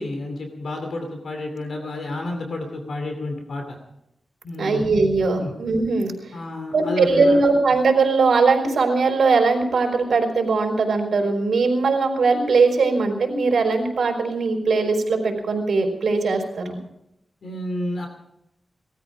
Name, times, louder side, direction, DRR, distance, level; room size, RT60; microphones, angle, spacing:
voice 1, 0.0-3.8 4.4-4.9 5.4-5.5 6.3-7.4 17.4-18.1, left 1 dB, 65° left, 4 dB, 2.6 m, -30 dB
voice 2, 4.5-6.1 6.7-16.8, right 4 dB, 75° right, 2 dB, 4.4 m, -20 dB
19.5 x 13.5 x 4.9 m, 0.83 s
wide cardioid pair, 135°, 0 cm